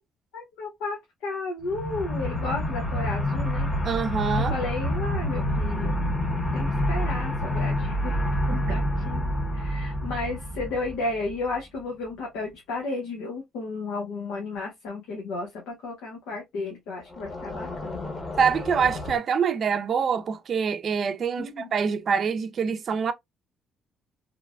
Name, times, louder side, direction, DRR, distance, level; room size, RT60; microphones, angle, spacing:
voice 1, 0.3-3.7 4.3-6.0 6.5-8.2 8.5-9.2 9.5-18.1 21.4-21.7, left 3 dB, 90° left, 0.9 m, -33 dB
sound 1, 1.6-11.6 17.1-19.2, equal, 30° left, 1.0 m, -28 dB
voice 2, 3.8-4.5 8.5-8.8 18.4-23.1, right 6 dB, 55° right, 0.5 m, -25 dB
3.3 x 2.1 x 2.4 m
supercardioid pair, 75°, 0 cm